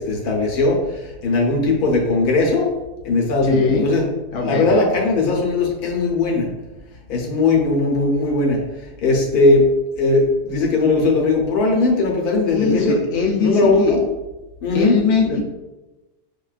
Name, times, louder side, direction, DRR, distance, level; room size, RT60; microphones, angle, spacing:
voice 1, 0.0-2.7 3.0-4.1 4.4-6.5 7.1-9.7 10.0-13.0 13.4-14.0 14.6-15.0 15.3-15.4, left 3 dB, 80° left, -1 dB, 1.3 m, -19 dB
voice 2, 3.5-3.8 4.3-4.6 12.5-14.0 14.7-15.4, left 5 dB, 60° left, -1 dB, 0.9 m, -20 dB
6.4 x 2.2 x 2.4 m, 1.1 s
omnidirectional pair, 1.5 m